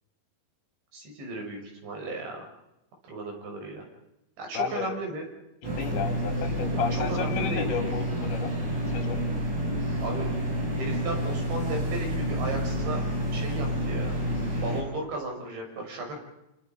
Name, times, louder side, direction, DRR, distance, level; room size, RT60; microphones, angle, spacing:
voice 1, 0.9-2.4 3.0-3.8 4.4-5.2 6.7-7.7 10.0-10.3 10.7-13.0 13.3-14.2 14.6-16.1, right 2 dB, 85° right, 1 dB, 8.8 m, -35 dB
voice 2, 4.5-4.9 5.6-8.6 8.8-9.2, left 6 dB, 80° left, 6 dB, 4.9 m, -32 dB
sound 1, 5.6-14.8, equal, 55° right, 8.7 m, -29 dB
27.5 x 27.0 x 5.4 m, 0.90 s
omnidirectional pair, 5.0 m